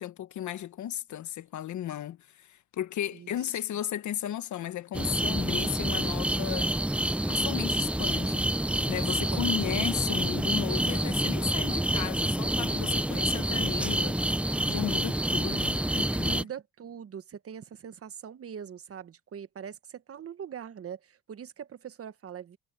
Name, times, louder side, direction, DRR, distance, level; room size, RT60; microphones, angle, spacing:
voice 1, 0.0-6.7 7.3-8.5 8.9-16.5, left 11 dB, 70° left, 1.5 m, -35 dB
voice 2, 3.1-3.5 9.3-9.8 16.2-22.6, right 8 dB, 50° right, 1.3 m, -42 dB
sound 1, 4.9-16.4, right 1 dB, 5° right, 0.7 m, -28 dB
cardioid pair, 90°, 30 cm